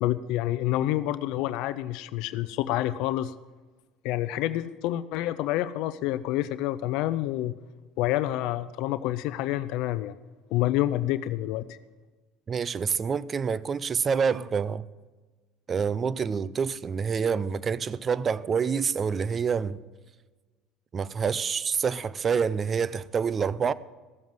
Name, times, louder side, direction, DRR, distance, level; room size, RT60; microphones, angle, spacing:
voice 1, 0.0-3.3 4.0-7.5 8.0-10.1 10.5-11.8, left 14 dB, 70° left, 0.5 m, -28 dB
voice 2, 12.5-14.8 15.7-19.8 20.9-23.7, right 6 dB, 35° right, 0.6 m, -27 dB
15.0 x 7.2 x 7.8 m
hypercardioid pair, 85°, 0 cm